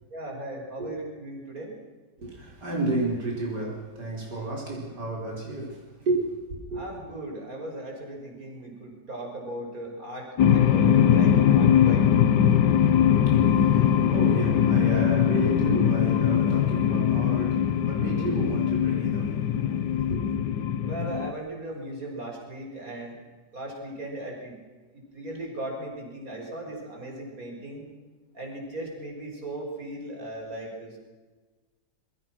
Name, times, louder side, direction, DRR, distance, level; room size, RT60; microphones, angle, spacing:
voice 1, 0.1-1.8 6.7-12.1 20.8-23.2 23.5-24.6 24.9-27.8 28.3-31.0, right 1 dB, 55° right, 5.9 m, -37 dB
voice 2, 2.2-6.2 6.5-6.8 13.1-20.3, right 2 dB, 90° right, 5.5 m, -32 dB
sound 1, 10.4-21.3, left 9 dB, 85° left, 1.6 m, -21 dB
27.0 x 23.0 x 6.2 m
omnidirectional pair, 1.7 m